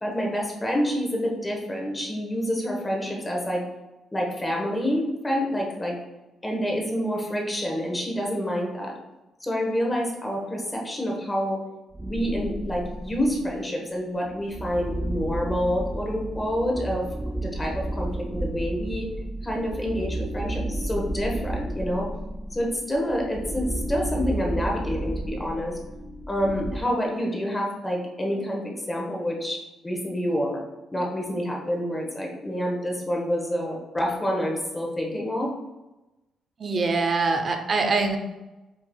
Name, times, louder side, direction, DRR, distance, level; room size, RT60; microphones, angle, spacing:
voice 1, 0.0-3.6 4.1-6.0 6.4-8.9 9.4-11.6 12.0-17.1 17.4-19.1 19.4-22.1 22.5-25.8 26.3-30.6 30.9-35.5, equal, 20° left, -1 dB, 1.1 m, -28 dB
sound 1, 11.9-13.7 14.3-26.8, right 1 dB, 15° right, 0.4 m, -32 dB
voice 2, 36.6-38.2, right 4 dB, 45° right, 5 dB, 0.7 m, -23 dB
5.9 x 3.7 x 2.2 m, 1.0 s
cardioid pair, 90°, 0 cm